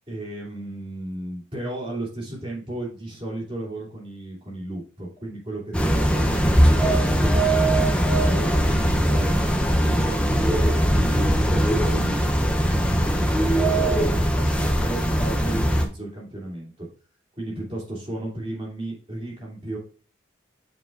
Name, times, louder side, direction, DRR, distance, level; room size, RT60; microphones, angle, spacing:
voice 1, 0.1-13.2 13.5-16.9 17.3-19.8, right 1 dB, 25° right, -4 dB, 2.8 m, -35 dB
sound 1, 5.7-15.8, equal, 5° left, 0.6 m, -20 dB
7.7 x 4.9 x 2.5 m, 0.41 s
head